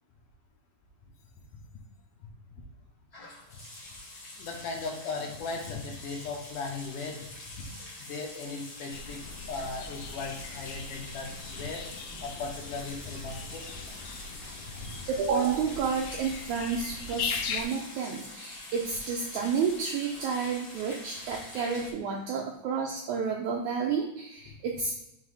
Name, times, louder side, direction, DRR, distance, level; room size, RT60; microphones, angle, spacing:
sound 1, 3.1-21.9, left 2 dB, 55° left, 0.9 m, -45 dB
voice 1, 4.4-7.3 7.5-7.7 8.0-9.2 9.5-11.8 12.2-13.6 14.8-14.9, left 4 dB, 70° left, 1 dB, 2.3 m, -37 dB
sound 2, 8.9-17.6, left 5 dB, 90° left, 1.6 m, -40 dB
voice 2, 15.0-25.0, right 6 dB, 80° right, 0 dB, 1.7 m, -30 dB
6.1 x 3.9 x 4.8 m, 0.87 s
omnidirectional pair, 4.1 m